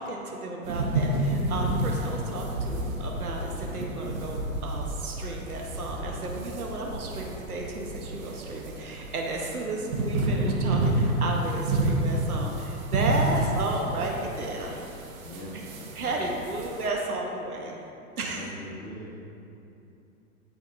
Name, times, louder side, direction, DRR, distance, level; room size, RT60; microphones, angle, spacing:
voice 1, 0.0-14.8 15.9-17.7 18.2-18.5, right 2 dB, 85° right, 0 dB, 1.0 m, -33 dB
sound 1, 0.6-16.9, right 1 dB, 65° right, 1.4 m, -30 dB
voice 2, 15.2-16.5 18.1-19.1, left 1 dB, 45° left, -6 dB, 1.4 m, -42 dB
14.0 x 5.1 x 2.6 m, 2.8 s
figure-of-eight pair, 105°, 44 cm